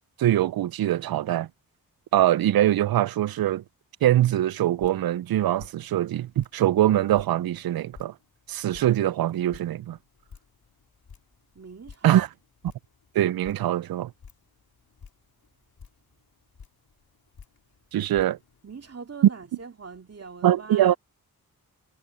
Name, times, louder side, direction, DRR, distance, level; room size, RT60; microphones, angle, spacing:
voice 1, 0.2-1.5 2.1-3.6 4.0-8.1 8.5-10.0 12.0-12.3 13.1-14.1 17.9-18.4 20.4-20.9, right 12 dB, 70° right, 0.5 m, -23 dB
Drip, 4.4-18.9, left 6 dB, 70° left, 4.9 m, -53 dB
voice 2, 11.5-12.2 18.6-21.0, right 5 dB, 40° right, 2.3 m, -42 dB
cardioid pair, 50°, 38 cm